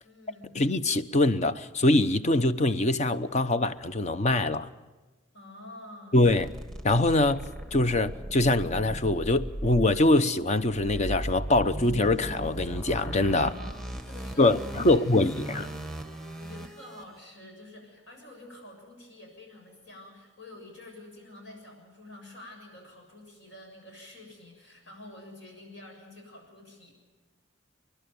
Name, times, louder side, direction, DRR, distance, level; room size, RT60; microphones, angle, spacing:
voice 1, 0.0-0.6 5.3-6.3 13.3-15.8 16.4-26.9, left 1 dB, 70° left, 7.2 m, -48 dB
voice 2, 0.5-4.7 6.1-6.5 6.8-7.4 7.7-13.5 14.4-15.7, left 2 dB, 35° left, 0.8 m, -23 dB
sound 1, 6.2-17.0, right 1 dB, ahead, 1.3 m, -38 dB
29.5 x 11.5 x 9.3 m
head